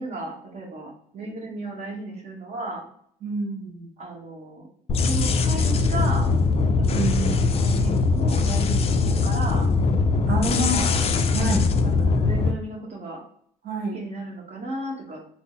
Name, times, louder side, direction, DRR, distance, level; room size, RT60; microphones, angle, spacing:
voice 1, 0.0-2.8 4.0-4.7 5.0-6.3 6.8-9.7 10.3-11.0 11.8-13.2 13.9-15.2, right 2 dB, 40° right, -1 dB, 1.2 m, -34 dB
voice 2, 3.2-3.9 6.9-7.4 10.3-10.8 11.3-11.7 13.6-14.0, right 2 dB, 65° right, 1 dB, 1.2 m, -27 dB
sound 1, 4.9-12.5, left 4 dB, 35° left, 0.4 m, -21 dB
3.7 x 2.0 x 3.9 m, 0.62 s
cardioid pair, 110°, 17 cm